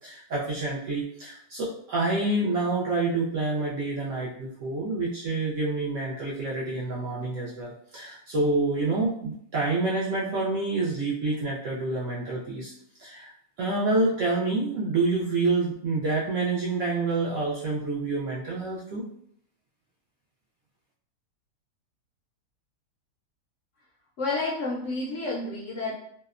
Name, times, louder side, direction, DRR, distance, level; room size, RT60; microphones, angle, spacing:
voice 1, 0.0-12.7 13.0-13.3 13.6-19.1, right 3 dB, 70° right, -6 dB, 0.7 m, -27 dB
voice 2, 24.2-25.9, left 3 dB, 65° left, -5 dB, 0.7 m, -30 dB
2.7 x 2.0 x 2.4 m, 0.67 s
omnidirectional pair, 1.7 m